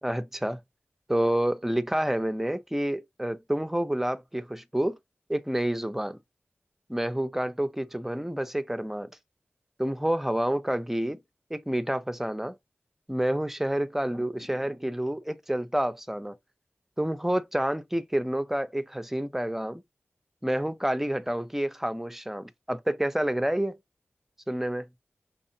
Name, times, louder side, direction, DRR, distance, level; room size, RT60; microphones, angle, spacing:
voice 1, 0.0-0.6 1.1-5.0 5.3-6.2 6.9-9.1 9.8-11.2 11.5-12.5 13.1-16.4 17.0-19.8 20.4-23.8 24.5-24.9, right 1 dB, 5° right, 0.5 m, -28 dB
5.4 x 3.5 x 2.7 m
wide cardioid pair, 75°, 4 cm